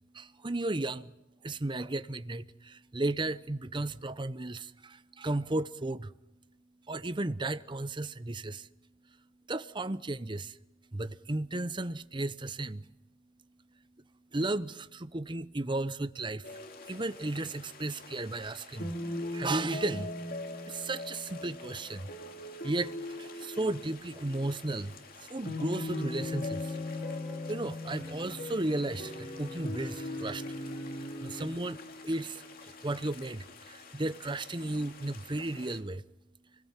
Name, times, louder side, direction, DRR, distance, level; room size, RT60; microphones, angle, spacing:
voice 1, 0.1-1.1 1.4-6.1 6.9-8.7 9.5-10.6 10.9-12.8 14.3-16.5 16.9-18.9 19.3-20.1 20.7-22.1 22.6-24.9 25.3-26.8 27.5-30.4 31.2-31.8 32.0-32.4 32.8-36.0, right 2 dB, 25° right, 0.9 m, -34 dB
sound 1, 16.4-35.8, left 2 dB, 50° left, 2.6 m, -41 dB
sound 2, 26.1-27.6 27.9-31.6, equal, 25° left, 2.7 m, -45 dB
29.5 x 20.5 x 7.5 m
head